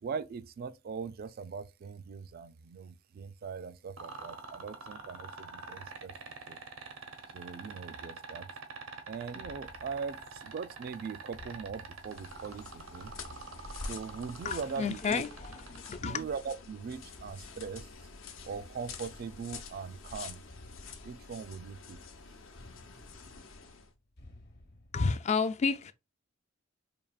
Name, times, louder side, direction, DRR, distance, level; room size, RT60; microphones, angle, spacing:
voice 1, 0.0-6.1 6.5-6.6 7.3-8.5 9.1-13.1 13.9-15.2 16.0-17.9 18.4-20.4 21.0-22.0, right 5 dB, 50° right, 0.3 m, -40 dB
sound 1, 4.0-16.1 17.8-17.9, right 4 dB, 90° right, 0.8 m, -45 dB
sound 2, 9.4-25.0, left 1 dB, 50° left, 0.9 m, -57 dB
sound 3, 12.0-23.9, left 4 dB, 75° left, 0.7 m, -47 dB
voice 2, 14.4-16.2 24.9-25.9, left 5 dB, 35° left, 0.3 m, -31 dB
4.6 x 2.8 x 2.3 m
head